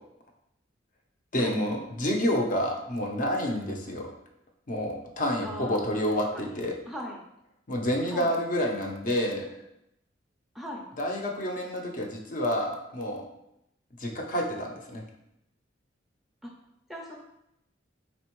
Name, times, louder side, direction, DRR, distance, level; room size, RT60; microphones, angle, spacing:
voice 1, 1.3-4.1 4.7-6.7 7.7-9.5 11.0-13.2 14.0-15.0, equal, 45° left, 1 dB, 0.7 m, -29 dB
voice 2, 5.4-5.9 6.3-6.6 6.9-7.2 8.0-8.3 10.5-10.8 16.9-17.2, equal, ahead, -2 dB, 0.5 m, -39 dB
4.3 x 4.1 x 3.0 m, 0.82 s
head